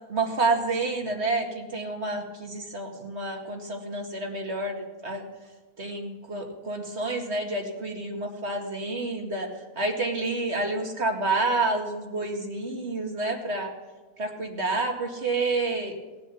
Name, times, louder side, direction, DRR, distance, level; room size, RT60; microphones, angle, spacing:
voice 1, 0.1-5.3 5.8-9.5 9.8-13.7 14.2-16.0, right 2 dB, 40° right, 2 dB, 2.3 m, -29 dB
19.0 x 10.0 x 7.1 m, 1.2 s
omnidirectional pair, 1.7 m